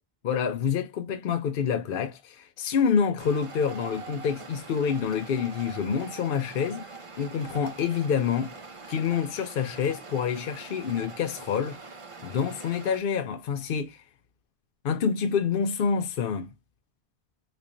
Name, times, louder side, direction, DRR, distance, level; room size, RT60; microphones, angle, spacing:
voice 1, 0.2-6.9 7.2-8.6 8.9-11.8 12.2-14.0 14.8-16.5, left 7 dB, 60° left, 0.7 m, -27 dB
sound 1, 3.2-13.0, right 4 dB, 35° right, 0.6 m, -44 dB
3.9 x 3.2 x 2.4 m
omnidirectional pair, 1.1 m